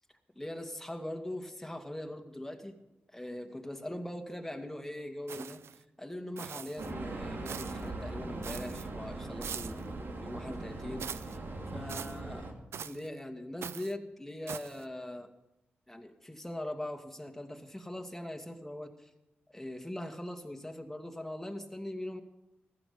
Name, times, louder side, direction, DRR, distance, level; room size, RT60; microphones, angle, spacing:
voice 1, 0.4-2.8 3.1-5.6 6.0-11.1 11.7-12.5 12.8-15.3 15.9-19.1 19.5-22.2, left 1 dB, 5° left, 4 dB, 2.3 m, -41 dB
sound 1, 5.3-5.8 6.4-6.9 7.5-7.9 8.4-8.9 9.4-9.9 11.0-11.4 11.9-12.2 12.7-13.1 13.6-13.9 14.5-14.8, right 8 dB, 75° right, 0.5 m, -42 dB
sound 2, 6.8-12.5, right 2 dB, 60° right, 3.0 m, -40 dB
15.5 x 12.5 x 5.4 m, 0.92 s
supercardioid pair, 45°, 4 cm